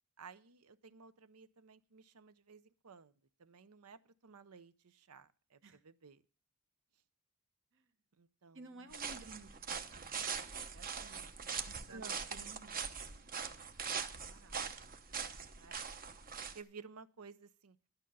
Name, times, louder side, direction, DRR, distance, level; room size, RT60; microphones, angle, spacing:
voice 1, 0.2-3.1 3.4-6.2 8.2-8.9 11.9-12.3 15.4-15.9 16.5-17.8, right 5 dB, 80° right, 15 dB, 0.7 m, -55 dB
voice 2, 8.5-14.6, right 2 dB, 60° right, 9 dB, 1.3 m, -58 dB
sound 1, 8.9-16.6, right 6 dB, 40° right, 0.9 m, -42 dB
11.5 x 9.0 x 5.4 m, 0.39 s
head